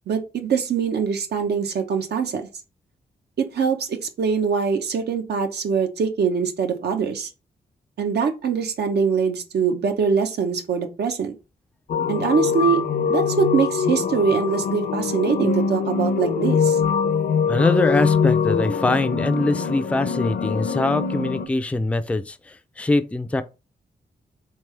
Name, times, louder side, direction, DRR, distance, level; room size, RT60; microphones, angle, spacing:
voice 1, 0.1-2.4 3.4-7.3 8.0-11.3 12.1-12.8 13.1-16.8, right 6 dB, 90° right, 0.8 m, -23 dB
sound 1, 11.9-21.5, left 6 dB, 60° left, 0.5 m, -23 dB
voice 2, 17.5-23.4, left 2 dB, 10° left, 0.3 m, -23 dB
3.6 x 3.3 x 3.1 m
wide cardioid pair, 120°, 17 cm